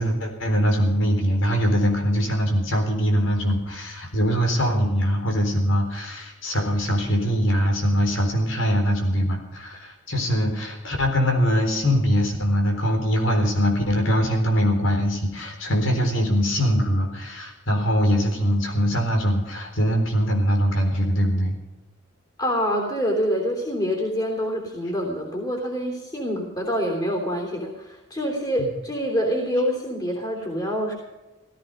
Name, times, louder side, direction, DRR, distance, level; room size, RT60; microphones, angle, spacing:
voice 1, 0.0-21.6 28.6-28.7, equal, 80° left, 3 dB, 3.9 m, -22 dB
voice 2, 22.4-30.9, equal, 20° left, 0 dB, 3.2 m, -26 dB
16.5 x 14.5 x 5.4 m, 1.1 s
head